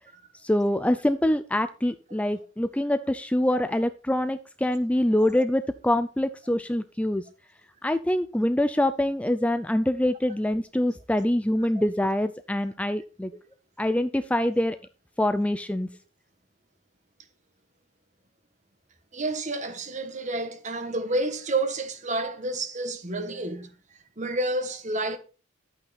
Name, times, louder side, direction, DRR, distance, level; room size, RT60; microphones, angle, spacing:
voice 1, 0.4-7.2 7.8-13.3 13.8-14.8 15.2-15.9, left 1 dB, 5° left, 0.4 m, -25 dB
voice 2, 19.1-23.7 24.2-25.2, right 2 dB, 35° right, 1.5 m, -29 dB
11.5 x 8.8 x 4.2 m
head